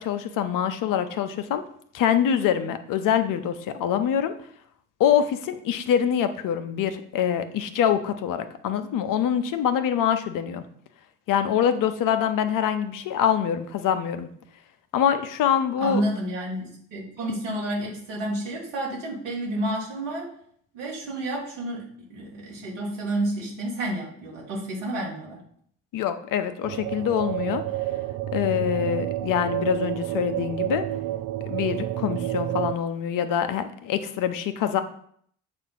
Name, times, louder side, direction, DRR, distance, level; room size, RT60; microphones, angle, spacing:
voice 1, 0.0-1.6 1.9-4.3 5.0-10.6 11.3-14.3 14.9-16.0 25.9-27.6 28.3-30.8 31.5-34.8, left 9 dB, 60° left, 10 dB, 0.7 m, -25 dB
voice 2, 15.8-20.3 20.7-25.4, right 1 dB, 85° right, -2 dB, 1.6 m, -30 dB
sound 1, 26.6-32.7, right 14 dB, 55° right, 0.4 m, -29 dB
6.8 x 2.5 x 5.6 m, 0.63 s
hypercardioid pair, 50°, 36 cm